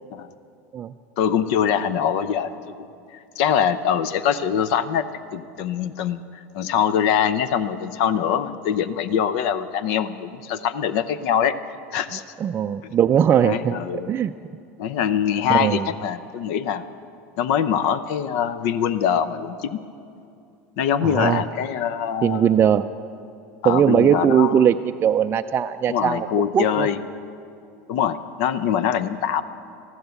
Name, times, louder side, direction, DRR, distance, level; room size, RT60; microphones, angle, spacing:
voice 1, 1.2-2.9 3.1-5.0 5.3-11.5 11.9-12.2 12.8-12.9 13.4-14.1 14.8-16.9 17.4-19.8 20.8-22.5 23.6-24.7 25.9-27.0 27.9-29.4, left 8 dB, 65° left, 14 dB, 0.7 m, -23 dB
voice 2, 12.4-13.8 14.1-14.3 15.5-15.9 21.0-21.4 22.2-22.9 23.6-26.3 26.5-26.9, right 9 dB, 30° right, 7 dB, 0.3 m, -19 dB
14.0 x 12.0 x 7.0 m, 2.5 s
supercardioid pair, 105°, 8 cm